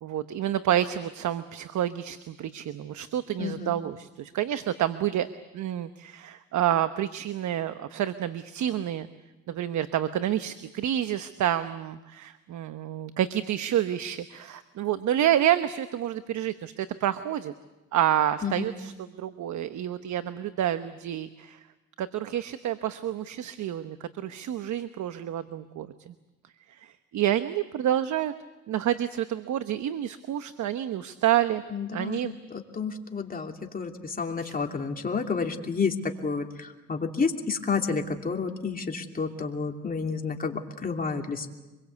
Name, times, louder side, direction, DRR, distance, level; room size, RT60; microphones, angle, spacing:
voice 1, 0.0-5.3 5.5-9.1 9.5-17.5 17.9-21.6 22.0-26.1 26.7-28.3 28.7-31.6 31.9-32.3 34.4-34.5, right 11 dB, 70° right, 11 dB, 1.0 m, -28 dB
voice 2, 3.4-3.8 18.4-18.7 31.7-41.5, left 5 dB, 30° left, 2 dB, 2.9 m, -30 dB
26.0 x 22.0 x 8.3 m, 1.1 s
cardioid pair, 90°, 30 cm